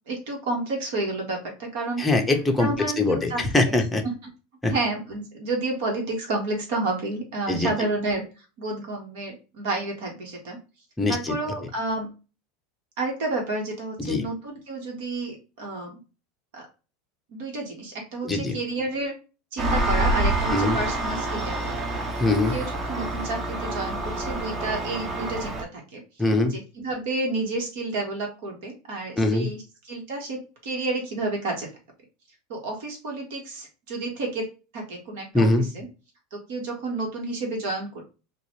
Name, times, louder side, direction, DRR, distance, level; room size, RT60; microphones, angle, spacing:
voice 1, 0.1-2.1 2.6-3.7 4.0-4.1 4.7-8.2 8.6-10.6 11.1-12.1 13.0-16.0 16.5-16.7 17.3-19.1 19.5-22.1 22.5-26.0 26.5-31.7 32.5-34.5 34.7-35.9 36.3-38.0, right 2 dB, 70° right, 1 dB, 1.4 m, -30 dB
voice 2, 2.0-4.0 4.6-4.7 7.5-7.7 11.0-11.4 14.0-14.2 18.2-18.6 20.5-20.8 22.2-22.6 26.2-26.5 29.2-29.5 35.3-35.7, left 2 dB, 10° left, 3 dB, 0.6 m, -22 dB
Engine, 19.6-25.6, right 2 dB, 25° right, 0.7 m, -27 dB
3.8 x 2.4 x 3.0 m, 0.32 s
supercardioid pair, 145°, 0 cm